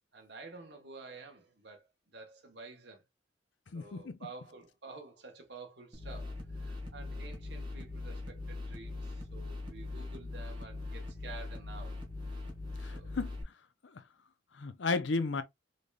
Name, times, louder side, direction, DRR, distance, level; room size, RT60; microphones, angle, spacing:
voice 1, 0.1-3.0 3.7-12.0 12.9-13.2, right 3 dB, 65° right, 1.2 m, -50 dB
voice 2, 3.7-4.2 12.8-13.4 13.9-14.0 14.5-15.4, left 3 dB, 80° left, 0.6 m, -33 dB
sound 1, 5.9-13.4, left 2 dB, 25° right, 1.4 m, -41 dB
4.0 x 3.3 x 2.3 m
head